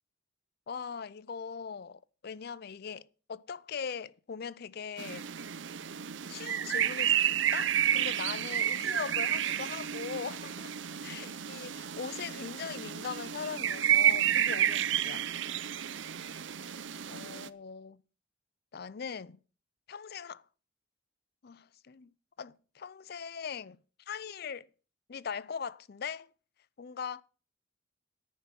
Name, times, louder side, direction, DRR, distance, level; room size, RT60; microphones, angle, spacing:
voice 1, 0.7-5.3 6.3-10.7 11.0-15.3 17.1-18.0 18.7-19.4 19.9-20.4 21.4-22.1 22.4-23.8 24.1-24.7 25.1-26.3 26.8-27.2, left 6 dB, 50° left, 0.5 m, -40 dB
sound 1, 5.0-17.5, right 10 dB, 65° right, 0.6 m, -31 dB
10.5 x 9.5 x 5.9 m
head